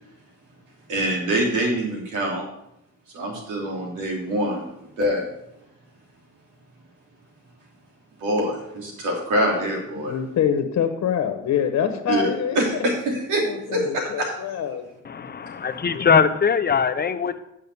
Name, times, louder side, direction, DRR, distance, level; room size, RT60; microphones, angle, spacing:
voice 1, 0.9-2.5 3.1-5.3 8.2-10.2 12.1-12.2 12.5-13.5 13.7-14.3, right 1 dB, 85° right, 0 dB, 3.1 m, -25 dB
voice 2, 10.0-12.6 13.1-14.8 16.0-16.1, left 8 dB, 65° left, 7 dB, 1.2 m, -25 dB
voice 3, 15.0-17.4, left 6 dB, 30° left, 11 dB, 0.8 m, -21 dB
8.7 x 5.6 x 6.8 m, 0.82 s
cardioid pair, 90°, 30 cm